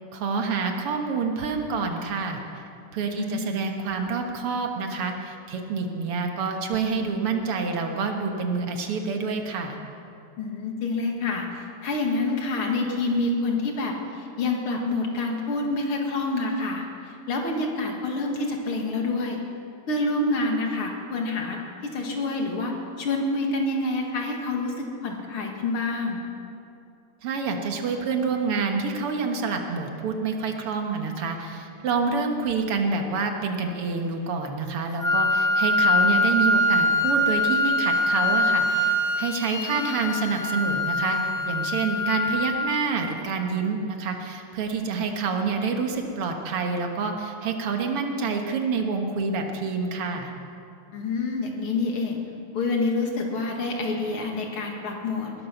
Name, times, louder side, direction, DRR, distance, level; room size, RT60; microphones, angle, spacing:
voice 1, 0.1-2.4 2.9-9.8 27.2-41.2 41.5-50.3, right 4 dB, 85° right, 4 dB, 2.3 m, -27 dB
voice 2, 3.1-3.4 10.4-19.4 19.9-26.2 39.6-39.9 50.9-52.2 52.5-55.3, left 2 dB, 75° left, 1 dB, 2.7 m, -27 dB
Wind instrument woodwind instrument, 35.0-43.0, left 1 dB, 30° left, 0.6 m, -23 dB
20.0 x 11.5 x 5.9 m, 2.6 s
omnidirectional pair, 2.4 m